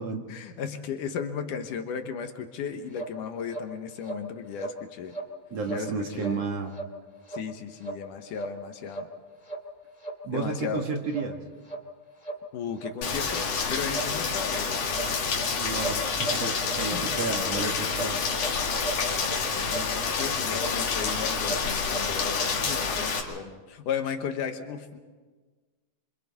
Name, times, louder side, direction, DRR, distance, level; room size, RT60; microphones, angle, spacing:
voice 1, 0.3-5.2 5.7-6.4 7.3-9.1 10.3-10.9 12.5-15.6 16.8-17.2 19.5-25.0, left 7 dB, 70° left, 6 dB, 2.5 m, -35 dB
sound 1, 2.9-3.1 3.5-3.7 4.0-4.2 4.6-4.8 5.1-5.3 5.6-5.8 6.2-6.3 6.7-6.9 7.3-7.4 7.8-8.0 8.3-8.5 8.9-9.1 9.4-9.6 10.0-10.2 10.6-10.7 11.1-11.3 11.7-11.8 12.2-12.4 12.8-12.9 13.3-13.5 13.9-14.1 14.5-14.6 14.9-15.5 15.8-16.8 17.1-17.2 17.5-17.6 17.9-18.5 18.8-19.4 19.7-19.9 20.1-20.3 20.6-20.8 21.0-21.1 21.4-22.0 22.3-22.5, right 3 dB, 15° left, 1.4 m, -36 dB
voice 2, 5.5-6.7 10.2-11.4 15.6-18.2, right 4 dB, 55° right, 3 dB, 2.2 m, -32 dB
Rain, 13.0-23.2, left 5 dB, 50° left, 3.0 m, -28 dB
26.5 x 25.5 x 4.2 m, 1.3 s
omnidirectional pair, 4.0 m